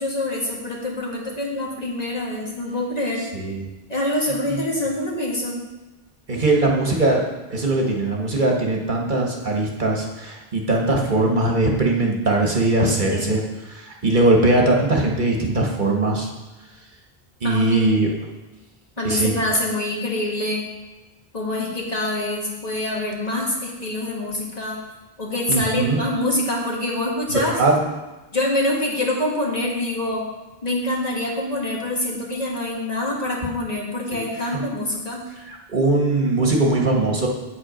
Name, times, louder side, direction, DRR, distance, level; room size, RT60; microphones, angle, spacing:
voice 1, 0.0-3.3 3.9-5.6 13.1-13.3 17.4-17.8 19.0-20.7 21.3-24.8 25.2-27.5 28.3-30.2 30.6-35.2, left 1 dB, 40° left, -3 dB, 2.0 m, -25 dB
voice 2, 3.3-3.6 6.3-7.2 7.5-13.4 13.7-16.3 17.4-18.1 19.0-19.3 25.5-26.0 27.3-27.8 34.1-34.2 34.5-34.6 35.5-37.3, right 2 dB, 50° right, 0 dB, 1.4 m, -20 dB
8.3 x 8.1 x 5.1 m, 1.1 s
omnidirectional pair, 1.0 m